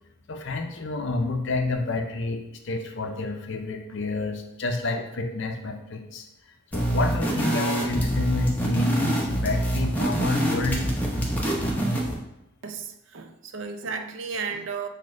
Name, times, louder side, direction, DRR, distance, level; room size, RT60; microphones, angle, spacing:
voice 1, 0.3-6.3 6.7-10.9, left 3 dB, 60° left, 5 dB, 0.5 m, -29 dB
sound 1, 6.7-12.2, right 1 dB, 10° left, 0.7 m, -26 dB
voice 2, 12.6-14.9, right 5 dB, 60° right, 7 dB, 0.4 m, -34 dB
4.2 x 2.5 x 4.8 m, 0.88 s
head